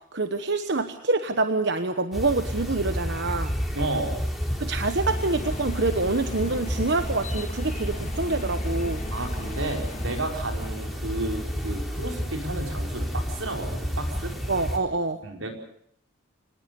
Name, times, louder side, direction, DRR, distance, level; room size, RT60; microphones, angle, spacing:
voice 1, 0.1-3.5 4.6-9.0 14.5-15.2, right 3 dB, 60° right, 8 dB, 1.1 m, -26 dB
sound 1, 2.1-14.8, equal, ahead, 3.5 m, -31 dB
voice 2, 3.7-4.2 9.1-14.3 15.2-15.5, right 2 dB, 85° right, 3 dB, 5.1 m, -32 dB
sound 2, 5.1-10.2, left 2 dB, 35° left, 1.4 m, -40 dB
25.5 x 19.5 x 7.0 m, 0.67 s
head